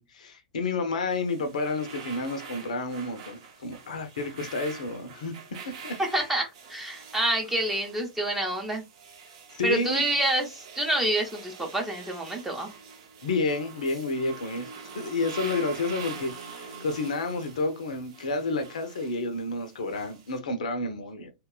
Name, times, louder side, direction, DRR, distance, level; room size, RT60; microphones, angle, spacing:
voice 1, 0.0-5.3 5.7-6.0 9.5-10.0 13.2-21.3, left 3 dB, 60° left, 0.5 m, -30 dB
sound 1, 1.1-20.4, right 5 dB, 45° right, 0.7 m, -45 dB
voice 2, 6.0-8.8 9.6-12.7, right 1 dB, 5° right, 0.7 m, -28 dB
2.9 x 2.2 x 2.3 m
figure-of-eight pair, 100°, 4 cm